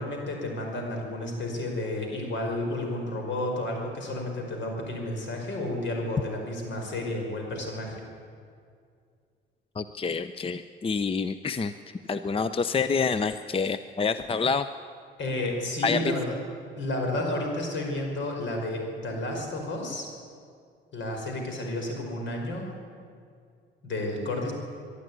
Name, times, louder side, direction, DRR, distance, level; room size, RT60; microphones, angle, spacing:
voice 1, 0.0-8.1 15.2-16.4 16.8-20.1 20.9-22.7 23.8-24.5, left 1 dB, 70° left, 2 dB, 5.2 m, -31 dB
voice 2, 9.8-11.7 12.1-14.7 15.8-16.1, left 5 dB, 30° left, 12 dB, 0.6 m, -27 dB
23.5 x 11.5 x 9.5 m, 2.3 s
cardioid pair, 90°, 20 cm